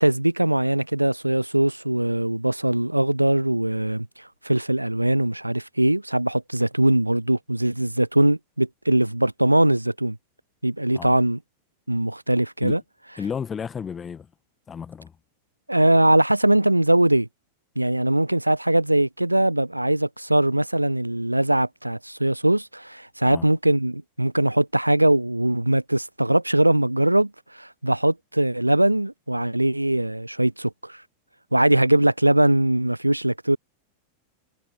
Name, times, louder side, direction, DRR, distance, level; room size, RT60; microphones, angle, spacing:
voice 1, 0.0-4.1 4.4-10.2 10.6-11.4 11.9-12.8 15.7-17.3 17.8-31.0 31.5-33.6, right 1 dB, 85° right, 0.3 m, -21 dB
voice 2, 13.2-14.3 14.7-15.1 23.2-23.5, left 7 dB, 20° left, 1.1 m, -33 dB
figure-of-eight pair, 90°, 0 cm